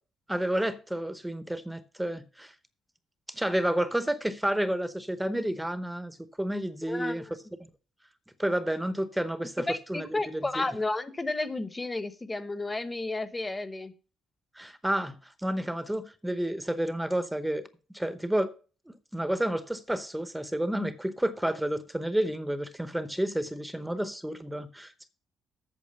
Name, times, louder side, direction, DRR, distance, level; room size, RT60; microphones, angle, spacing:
voice 1, 0.3-2.5 3.3-7.2 8.4-10.1 10.3-10.6 14.6-17.7 17.9-18.5 18.9-25.1, right 1 dB, 5° right, 0.8 m, -30 dB
voice 2, 6.9-7.4 9.7-13.9, left 2 dB, 20° left, 1.1 m, -32 dB
8.5 x 6.4 x 6.7 m
cardioid pair, 90°, 0 cm